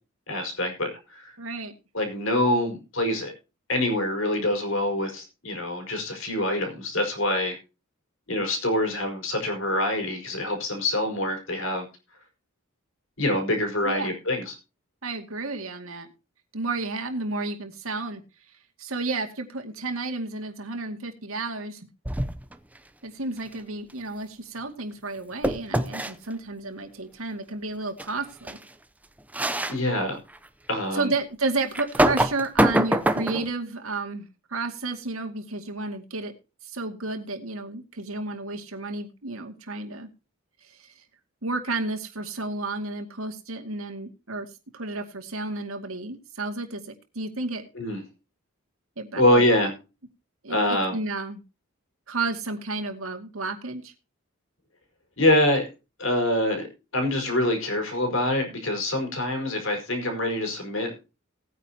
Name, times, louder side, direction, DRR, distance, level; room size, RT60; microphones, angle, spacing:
voice 1, 0.3-1.4 1.9-3.3 3.7-7.6 8.3-11.8 13.2-14.5 29.7-30.2 30.7-31.1 47.7-48.0 49.2-49.7 50.5-51.0 55.2-55.7 56.0-56.7 56.9-60.9, left 1 dB, 65° left, 4 dB, 4.9 m, -25 dB
voice 2, 1.4-1.7 13.8-14.1 15.0-16.1 16.5-18.2 18.8-21.9 23.0-28.6 30.9-36.3 36.6-40.1 40.7-40.9 41.4-46.8 47.1-47.6 49.0-49.4 50.4-51.4 52.1-53.9, right 3 dB, 75° right, 4 dB, 2.3 m, -32 dB
sound 1, 22.1-22.5 25.4-26.1 28.0-28.1 28.5-28.6 29.3-29.8 30.3-30.4 31.7-33.5, right 1 dB, 5° right, 0.6 m, -23 dB
19.0 x 9.4 x 2.9 m, 0.30 s
head